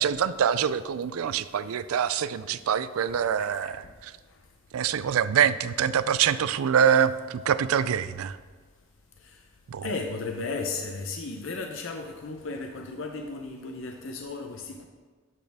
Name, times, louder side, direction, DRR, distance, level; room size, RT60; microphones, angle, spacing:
voice 1, 0.0-3.8 4.7-8.4 9.7-9.9, right 8 dB, 85° right, 15 dB, 0.4 m, -25 dB
voice 2, 3.4-3.8 9.8-14.8, left 3 dB, 65° left, 3 dB, 0.6 m, -35 dB
11.0 x 6.4 x 3.5 m, 1.4 s
head